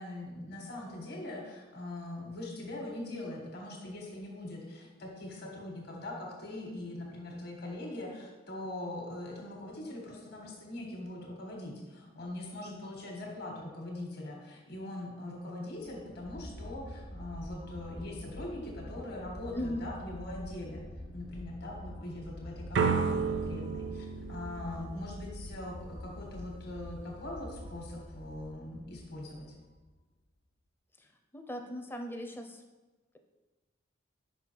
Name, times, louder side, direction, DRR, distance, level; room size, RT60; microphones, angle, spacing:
voice 1, 0.0-20.8 21.1-29.5, left 1 dB, 55° left, 0 dB, 1.4 m, -42 dB
sound 1, 15.8-29.9, equal, 80° left, 0.9 m, -46 dB
voice 2, 19.5-19.9 31.0-32.6, left 1 dB, 10° left, 5 dB, 0.5 m, -39 dB
sound 2, 22.7-25.6, right 5 dB, 65° right, 0.4 m, -32 dB
5.5 x 5.5 x 4.5 m, 1.2 s
head